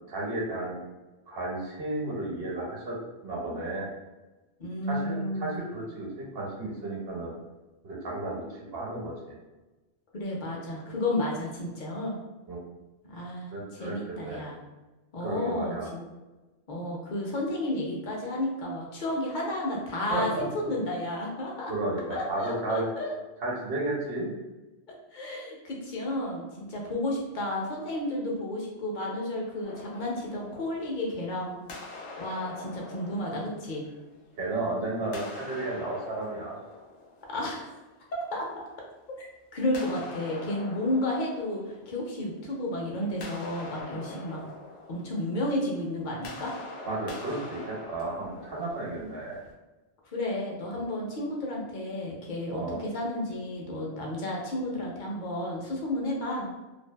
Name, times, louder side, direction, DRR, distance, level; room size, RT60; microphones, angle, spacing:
voice 1, 0.1-0.8 1.3-3.0 3.2-3.9 4.9-7.3 7.8-9.4 12.5-12.6 13.5-14.0 14.2-14.4 15.2-15.9 20.1-20.4 21.7-22.9 23.4-24.3 34.4-36.6 46.9-49.4 52.5-52.8, right 2 dB, 65° right, -4 dB, 0.9 m, -33 dB
voice 2, 4.6-5.5 10.1-12.2 13.1-14.5 15.1-16.0 16.7-21.7 22.1-23.1 25.1-31.6 32.2-33.8 37.3-37.7 38.1-38.6 39.2-39.3 39.5-44.4 44.9-46.5 50.1-56.5, left 1 dB, 50° left, -2 dB, 0.7 m, -32 dB
sound 1, 29.6-31.3 31.7-34.5 35.0-37.9 39.7-42.5 42.8-49.5, left 2 dB, 90° left, 0.9 m, -44 dB
2.6 x 2.3 x 2.2 m, 1.1 s
omnidirectional pair, 1.1 m